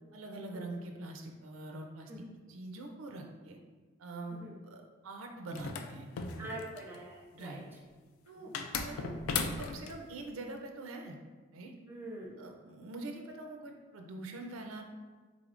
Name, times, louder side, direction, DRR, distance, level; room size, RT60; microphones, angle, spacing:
voice 1, 0.1-2.2 2.5-3.6 4.0-6.1 6.4-6.6 7.3-7.6 8.3-8.5 8.8-9.1 9.4-11.2 11.5-11.8 12.4-14.8, right 2 dB, 75° right, 3 dB, 0.4 m, -44 dB
sound 1, 5.5-7.0 8.5-10.0, left 5 dB, 85° left, 0.3 m, -36 dB
voice 2, 6.4-7.6 8.3-8.6 11.9-12.3, right 1 dB, 10° right, -3 dB, 0.5 m, -45 dB
3.8 x 3.3 x 2.4 m, 1.4 s
head